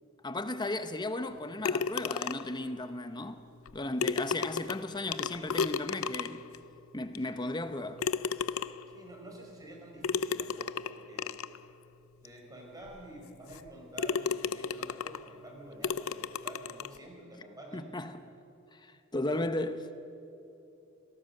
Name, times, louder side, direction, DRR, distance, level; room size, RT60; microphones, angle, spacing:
voice 1, 0.2-3.4 3.7-6.5 6.9-8.0 17.7-18.3 18.7-20.0, left 2 dB, 20° left, 0.9 m, -35 dB
sound 1, 1.6-2.6 3.7-3.8 4.0-6.6 7.2-7.3 8.0-9.0 10.0-11.6 12.3-12.4 12.9-13.0 13.5-13.7 14.0-15.3 15.8-17.0, left 5 dB, 75° left, 0.6 m, -33 dB
voice 2, 8.9-11.4 12.2-17.8 19.4-19.5, right 1 dB, 20° right, 4.9 m, -49 dB
27.0 x 18.0 x 6.7 m
head